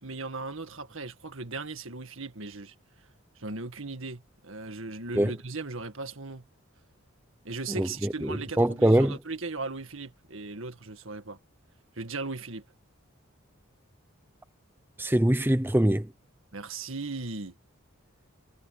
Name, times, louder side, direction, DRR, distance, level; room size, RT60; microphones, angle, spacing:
voice 1, 0.0-2.8 3.4-6.5 7.4-11.4 12.0-12.6 16.5-17.5, right 3 dB, 70° right, 1.8 m, -37 dB
voice 2, 7.8-9.2 15.0-16.1, right 1 dB, 10° right, 0.6 m, -23 dB
head